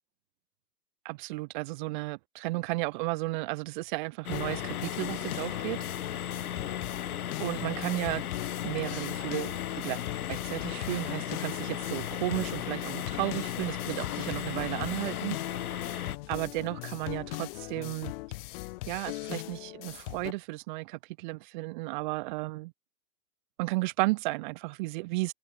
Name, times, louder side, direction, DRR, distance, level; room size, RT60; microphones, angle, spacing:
voice 1, 1.0-5.8 7.4-8.2 8.6-10.0 10.3-18.1 18.9-22.7 23.6-25.3, right 23 dB, 30° right, 1.0 m, -34 dB
sound 1, 4.2-16.2, left 10 dB, 65° left, 2.8 m, -36 dB
sound 2, 4.3-20.3, left 22 dB, 40° left, 3.2 m, -40 dB
hypercardioid pair, 140°, 47 cm